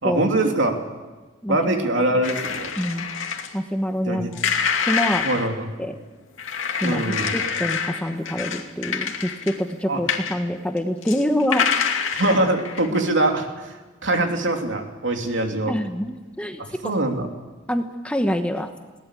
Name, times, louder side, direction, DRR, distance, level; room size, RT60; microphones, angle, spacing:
voice 1, 0.0-0.8 1.5-2.7 4.1-4.3 5.2-5.6 6.8-7.4 9.9-10.0 12.2-15.7 16.6-17.3, right 1 dB, 65° right, 3 dB, 3.0 m, -23 dB
voice 2, 1.4-1.9 2.8-3.1 3.5-4.4 4.9-5.2 5.8-5.9 6.8-7.0 7.3-11.7 15.7-16.9 17.7-18.7, equal, 5° left, 6 dB, 1.1 m, -26 dB
sound 1, 2.2-3.5 4.3-5.5 6.4-9.7 10.1-10.4 10.8-13.0, left 6 dB, 75° left, 2.5 m, -26 dB
21.0 x 18.0 x 8.4 m, 1.3 s
head